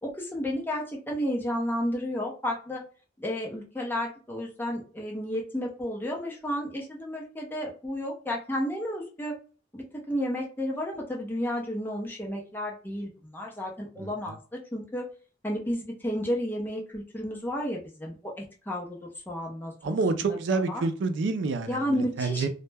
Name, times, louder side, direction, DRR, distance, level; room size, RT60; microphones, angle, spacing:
voice 1, 0.0-2.8 3.2-9.3 9.7-15.1 15.4-19.0 19.3-20.0 20.3-20.4 20.7-20.8 21.7-22.5, equal, 10° left, -1 dB, 0.5 m, -32 dB
voice 2, 19.8-22.5, right 4 dB, 85° right, 9 dB, 0.4 m, -28 dB
2.1 x 2.0 x 3.3 m, 0.39 s
head